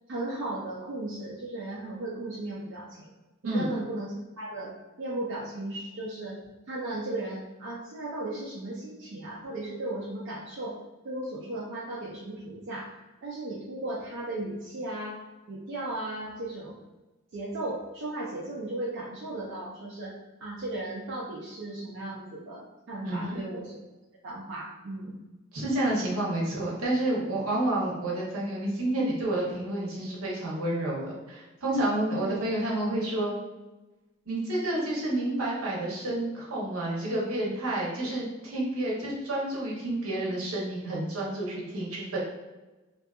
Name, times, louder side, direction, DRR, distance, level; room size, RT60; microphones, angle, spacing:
voice 1, 0.1-3.1 3.4-4.7 5.0-6.4 6.7-10.8 11.0-15.2 15.5-16.8 17.3-20.1 20.4-23.8 24.2-25.2 32.2-32.4, right 2 dB, 60° right, -5 dB, 0.4 m, -36 dB
voice 2, 23.0-23.4 25.5-33.4 34.3-42.2, right 1 dB, 85° right, -4 dB, 0.8 m, -29 dB
2.6 x 2.4 x 2.3 m, 1.1 s
head